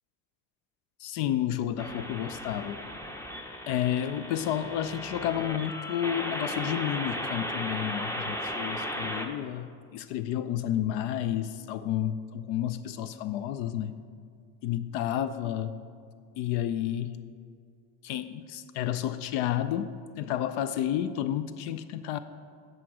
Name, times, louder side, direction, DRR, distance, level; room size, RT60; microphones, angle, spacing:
voice 1, 1.0-2.9 3.7-14.0 14.6-15.7 16.4-17.2 18.0-22.2, left 11 dB, 65° left, 12 dB, 0.6 m, -31 dB
sound 1, 1.8-9.3, equal, 5° left, 0.7 m, -36 dB
7.7 x 7.6 x 4.8 m, 2.1 s
hypercardioid pair, 65°, 49 cm